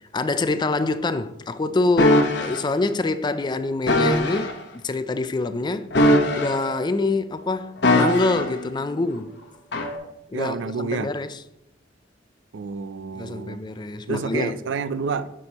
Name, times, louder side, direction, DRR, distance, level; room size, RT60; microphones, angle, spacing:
voice 1, 0.1-5.9 6.4-9.3 10.3-11.4 13.1-14.6, left 3 dB, 25° left, 0.4 m, -25 dB
sound 1, 2.0-2.6 3.9-4.5 5.9-6.8 7.8-8.6 9.7-10.0, left 1 dB, 65° left, 1.0 m, -20 dB
voice 2, 10.3-11.1 12.5-13.6 14.1-15.3, right 5 dB, 75° right, 0.4 m, -29 dB
9.6 x 6.1 x 2.9 m
head